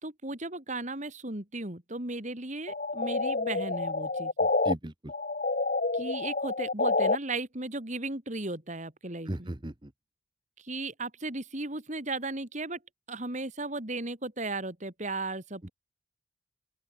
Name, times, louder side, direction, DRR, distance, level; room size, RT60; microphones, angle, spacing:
voice 1, 0.0-4.3 5.9-9.5 10.6-12.8 13.1-15.7, right 2 dB, 40° right, 2.8 m, -36 dB
sound 1, 2.7-4.7 5.1-7.2, left 3 dB, 45° left, 1.3 m, -28 dB
voice 2, 4.4-5.1 9.3-9.9 15.6-15.7, right 1 dB, 25° right, 1.1 m, -37 dB
open air
head